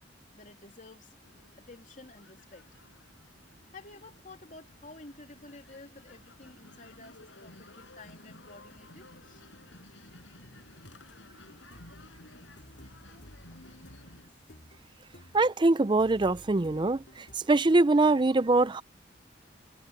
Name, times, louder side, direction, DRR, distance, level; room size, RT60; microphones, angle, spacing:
voice 1, 0.3-1.2 1.6-2.7 3.7-9.4, left 2 dB, 40° left, 3.1 m, -51 dB
sound 1, 1.2-14.3, left 2 dB, 90° left, 6.3 m, -54 dB
sound 2, 11.4-17.4, left 1 dB, 60° left, 3.6 m, -54 dB
voice 2, 15.3-17.0 17.5-18.8, right 2 dB, 25° right, 0.5 m, -23 dB
head